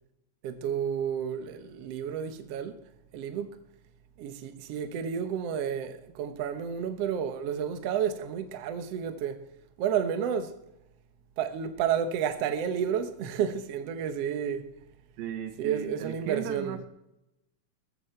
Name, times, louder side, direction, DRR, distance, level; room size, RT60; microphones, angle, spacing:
voice 1, 0.4-2.8 3.1-3.6 4.2-9.5 9.8-10.6 11.4-14.7 15.6-16.8, right 8 dB, 65° right, 1.6 m, -31 dB
voice 2, 15.2-16.9, right 9 dB, 90° right, 3.2 m, -36 dB
16.5 x 14.0 x 4.4 m
omnidirectional pair, 4.0 m